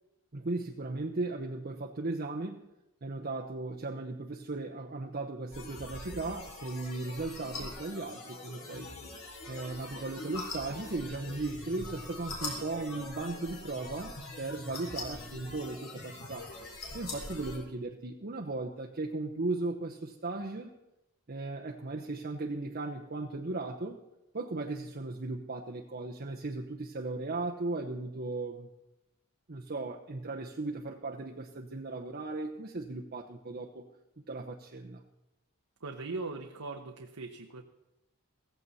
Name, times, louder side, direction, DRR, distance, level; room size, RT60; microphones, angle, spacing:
voice 1, 0.3-2.7 3.0-8.9 9.5-16.5 16.9-20.7 21.3-24.0 24.3-28.7 29.5-33.9 34.3-35.0, right 2 dB, 45° right, 1 dB, 0.9 m, -37 dB
sound 1, 5.5-17.6, left 2 dB, 65° left, 4.2 m, -43 dB
voice 2, 35.8-37.6, right 3 dB, 80° right, 3 dB, 1.0 m, -40 dB
16.5 x 15.0 x 4.2 m, 0.92 s
head